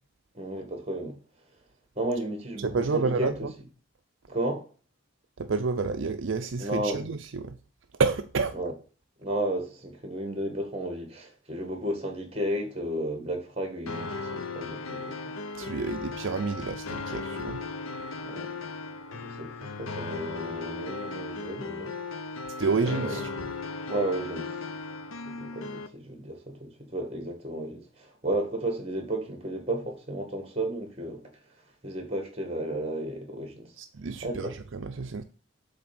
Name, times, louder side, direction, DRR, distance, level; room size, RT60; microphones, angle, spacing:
voice 1, 0.3-1.2 2.0-3.3 4.3-4.7 6.6-7.0 8.5-8.7 9.2-15.1 18.2-18.5 19.1-21.9 22.8-23.2 23.9-24.6 25.3-31.2 31.8-33.7 34.2-34.5, right 1 dB, 30° right, 1.9 m, -33 dB
voice 2, 2.6-3.5 5.4-7.6 8.0-8.6 15.5-17.6 22.6-23.5 33.8-35.2, right 4 dB, 65° right, 0.5 m, -29 dB
sound 1, 13.9-25.9, left 3 dB, 90° left, 0.7 m, -37 dB
8.0 x 3.4 x 5.9 m
head